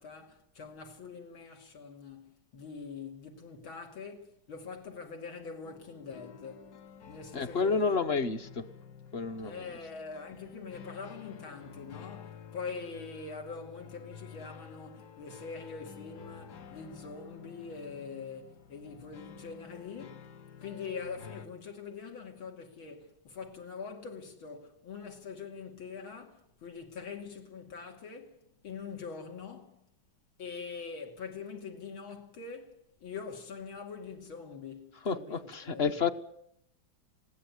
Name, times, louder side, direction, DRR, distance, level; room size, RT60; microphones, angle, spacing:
voice 1, 0.0-6.7 7.1-8.2 9.4-20.3 20.6-29.9 30.4-36.0, left 5 dB, 90° left, 3.4 m, -44 dB
sound 1, 5.6-21.5, left 7 dB, 60° left, 1.5 m, -51 dB
voice 2, 7.3-8.7 9.1-9.7 35.0-36.1, left 5 dB, 40° left, 1.0 m, -30 dB
20.5 x 16.5 x 9.5 m
omnidirectional pair, 2.2 m